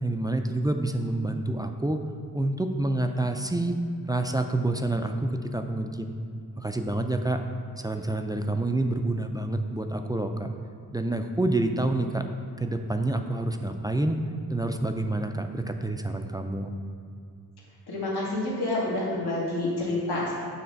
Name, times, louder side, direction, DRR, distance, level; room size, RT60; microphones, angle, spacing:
voice 1, 0.0-2.0 2.3-3.8 4.1-6.2 6.6-7.4 7.8-10.5 10.9-12.3 12.6-14.2 14.5-16.7, right 2 dB, 10° right, 5 dB, 0.3 m, -28 dB
voice 2, 17.9-20.3, left 2 dB, 75° left, -5 dB, 1.3 m, -28 dB
7.0 x 3.2 x 5.1 m, 2.3 s
cardioid pair, 50°, 39 cm